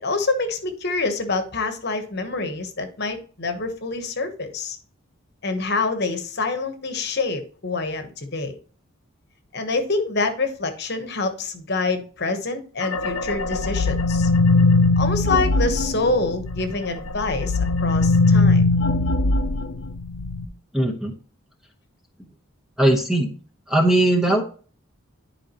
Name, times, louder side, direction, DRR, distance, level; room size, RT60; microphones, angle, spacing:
voice 1, 0.0-4.8 5.4-8.6 9.5-14.3 15.0-18.6, left 3 dB, 50° left, 7 dB, 1.1 m, -26 dB
sound 1, 12.8-16.7 17.1-20.4, left 3 dB, 80° left, 0.6 m, -20 dB
voice 2, 20.7-21.1 22.8-23.3 23.7-24.4, right 1 dB, ahead, 1 dB, 0.9 m, -19 dB
10.5 x 4.8 x 3.0 m, 0.40 s
head